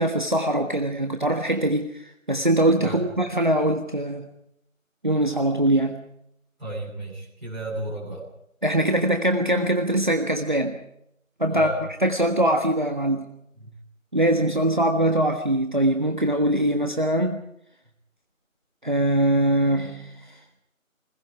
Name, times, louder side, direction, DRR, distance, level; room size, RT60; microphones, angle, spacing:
voice 1, 0.0-4.3 5.0-6.0 8.6-10.8 11.4-11.7 12.0-13.2 14.1-17.4 18.8-20.3, right 1 dB, 35° right, 3 dB, 1.5 m, -22 dB
voice 2, 2.8-3.2 6.6-8.2 11.5-11.8 13.5-13.7, right 2 dB, ahead, -24 dB, 3.1 m, -34 dB
28.0 x 21.0 x 5.0 m, 0.78 s
figure-of-eight pair, 175°, 41 cm